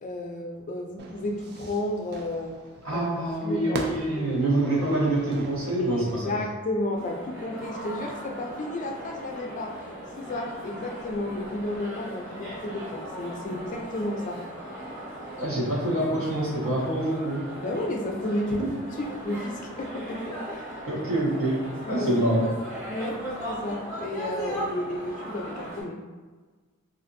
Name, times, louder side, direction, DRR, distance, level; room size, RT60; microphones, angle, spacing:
voice 1, 0.0-2.5 2.9-3.1 3.4-4.4 5.8-14.4 17.6-18.6 19.0-20.8 21.8-22.1 22.9-23.2 23.5-26.0, left 1 dB, 40° left, 2 dB, 0.3 m, -32 dB
Fire / Fireworks, 1.0-6.5, right 3 dB, 50° right, 0.3 m, -41 dB
voice 2, 2.8-6.4 15.4-17.4 18.6-18.7 20.9-22.5, right 1 dB, 75° right, -6 dB, 1.0 m, -26 dB
sound 1, 6.9-25.8, right 1 dB, 15° right, 1.0 m, -38 dB
2.5 x 2.4 x 2.5 m, 1.3 s
head